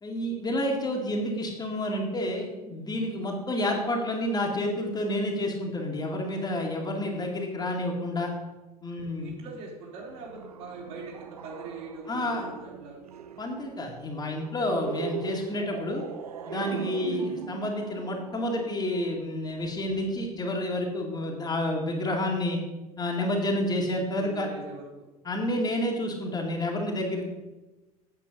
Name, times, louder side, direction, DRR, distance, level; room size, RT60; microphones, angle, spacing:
voice 1, 0.0-8.3 8.8-9.3 12.1-12.5 13.4-16.0 16.4-22.6 23.0-24.5 25.2-27.3, left 1 dB, 20° left, 0 dB, 1.9 m, -29 dB
voice 2, 9.2-13.0 16.8-17.2 24.1-25.1, right 3 dB, 55° right, -4 dB, 4.0 m, -42 dB
sound 1, 10.0-19.7, right 8 dB, 75° right, 0.6 m, -40 dB
8.4 x 8.1 x 5.3 m, 1.1 s
figure-of-eight pair, 70°, 20 cm